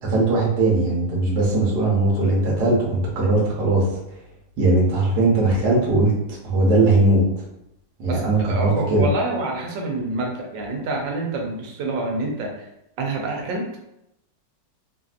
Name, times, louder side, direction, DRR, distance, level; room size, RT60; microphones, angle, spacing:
voice 1, 0.0-3.9 4.6-6.1 6.4-7.2 8.0-9.1, right 2 dB, 70° right, -4 dB, 1.4 m, -19 dB
voice 2, 8.1-12.5 13.0-13.8, right 2 dB, 90° right, 0 dB, 1.4 m, -27 dB
3.2 x 2.6 x 2.4 m, 0.83 s
omnidirectional pair, 1.9 m